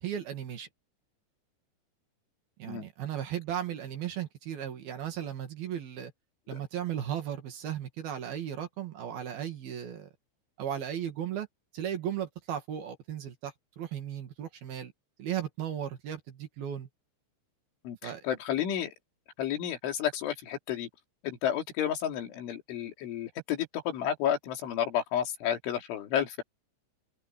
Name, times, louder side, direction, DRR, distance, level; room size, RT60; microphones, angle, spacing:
voice 1, 0.0-0.7 2.6-6.1 6.5-10.1 10.6-11.5 11.7-14.9 15.2-16.9 18.0-18.2, right 10 dB, 60° right, 3.6 m, -36 dB
voice 2, 17.9-18.9 19.4-20.9 21.2-26.4, left 9 dB, 80° left, 5.4 m, -31 dB
omnidirectional pair, 5.5 m